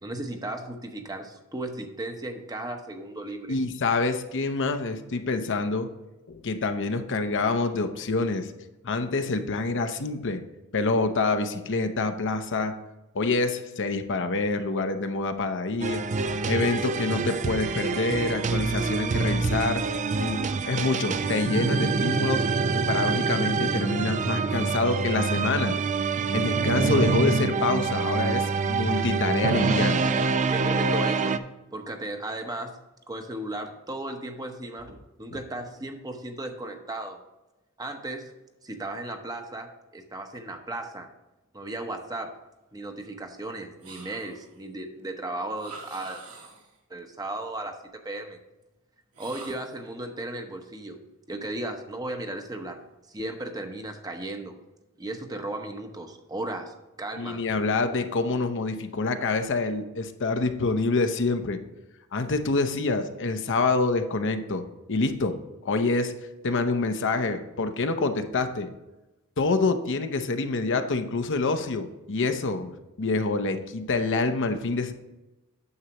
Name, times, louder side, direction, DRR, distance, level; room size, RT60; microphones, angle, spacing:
voice 1, 0.0-3.6 30.5-31.4 31.7-32.7 33.1-37.2 37.8-38.3 38.6-41.1 41.5-42.3 42.7-46.2 46.9-47.8 48.0-48.4 49.2-51.0 51.3-52.8 53.1-54.6 55.0-57.4, right 2 dB, 15° right, 5 dB, 0.9 m, -35 dB
voice 2, 3.5-5.9 6.3-8.5 8.8-10.4 10.7-12.7 13.1-16.0 16.5-19.8 20.2-22.5 22.7-25.8 26.3-30.1 57.2-61.6 62.1-64.6 64.9-65.4 65.6-66.1 66.4-68.7 69.4-72.7 73.0-74.9, left 3 dB, 55° left, 7 dB, 0.8 m, -26 dB
sound 1, 15.8-31.4, right 4 dB, 35° right, 0.4 m, -26 dB
sound 2, 43.8-44.6 45.6-46.8 49.1-49.9, right 4 dB, 70° right, 1.9 m, -45 dB
9.6 x 7.3 x 2.9 m, 1.0 s
head